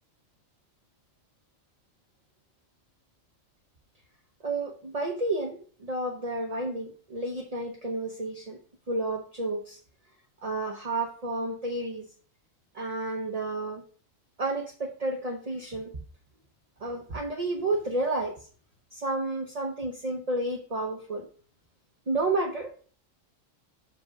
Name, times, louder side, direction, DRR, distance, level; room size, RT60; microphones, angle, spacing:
voice 1, 4.4-8.6 8.9-9.8 10.4-12.1 12.7-13.8 14.4-15.9 16.8-18.3 18.9-21.3 22.1-22.8, right 2 dB, 35° right, 2 dB, 0.9 m, -31 dB
5.9 x 5.1 x 5.8 m, 0.42 s
omnidirectional pair, 1.3 m